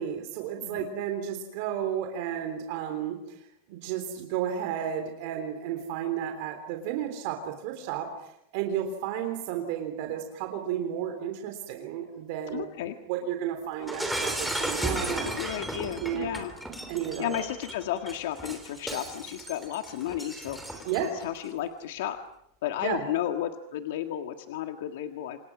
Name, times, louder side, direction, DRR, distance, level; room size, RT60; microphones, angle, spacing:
voice 1, 0.0-15.3 16.0-16.3 16.9-17.4 20.9-21.1 22.8-23.1, right 9 dB, 45° right, 5 dB, 3.5 m, -33 dB
voice 2, 12.5-13.0 15.3-16.5 17.2-22.2 22.6-25.4, left 11 dB, 65° left, 6 dB, 1.8 m, -33 dB
Shatter, 13.9-21.2, right 1 dB, ahead, 3.2 m, -35 dB
28.5 x 27.5 x 6.2 m, 0.76 s
supercardioid pair, 180°, 0 cm